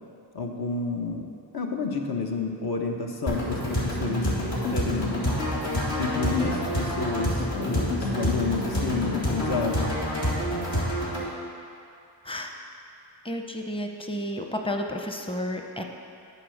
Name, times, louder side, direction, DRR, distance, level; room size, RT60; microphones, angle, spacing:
voice 1, 0.3-1.3 1.5-4.3 4.7-5.2 6.0-9.9, left 4 dB, 60° left, 1 dB, 1.1 m, -30 dB
sound 1, 3.3-11.3, equal, 75° left, 2.2 m, -27 dB
voice 2, 13.2-15.8, equal, 10° left, 3 dB, 0.8 m, -31 dB
8.5 x 4.7 x 6.5 m, 2.5 s
cardioid pair, 45°, 43 cm